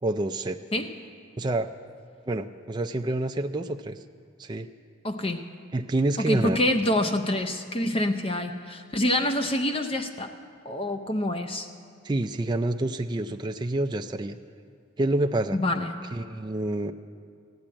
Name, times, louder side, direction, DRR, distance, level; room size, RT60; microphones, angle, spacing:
voice 1, 0.0-0.6 1.4-1.7 2.3-4.0 4.4-4.7 5.7-6.6 12.0-14.4 15.0-15.6 16.1-16.9, right 2 dB, 20° right, 5 dB, 0.3 m, -27 dB
voice 2, 5.0-5.4 6.2-10.3 10.6-11.7 15.5-16.0, left 1 dB, 25° left, 6 dB, 0.6 m, -26 dB
15.0 x 8.8 x 8.6 m, 2.2 s
head